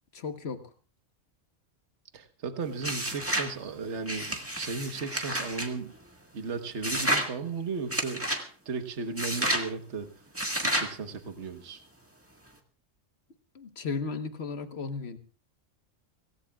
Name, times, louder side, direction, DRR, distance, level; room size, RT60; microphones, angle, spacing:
voice 1, 0.1-0.6 13.5-15.2, left 4 dB, 55° left, 8 dB, 1.5 m, -35 dB
voice 2, 2.1-5.9 6.3-8.3 8.6-10.1 10.6-11.8, right 4 dB, 60° right, 8 dB, 1.5 m, -35 dB
sound 1, 2.8-3.5 4.1-5.7 6.8-7.3 7.9-8.4 9.2-9.7 10.4-10.9, right 1 dB, 10° right, 1.7 m, -30 dB
25.0 x 18.0 x 2.4 m, 0.36 s
omnidirectional pair, 1.3 m